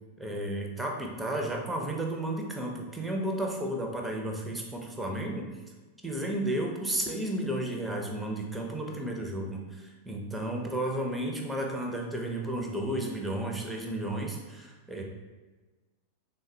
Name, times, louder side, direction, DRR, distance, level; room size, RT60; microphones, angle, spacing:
voice 1, 0.2-5.5 6.0-15.0, right 1 dB, 5° right, 0 dB, 0.5 m, -33 dB
3.5 x 2.1 x 2.6 m, 1.3 s
figure-of-eight pair, 90°, 0 cm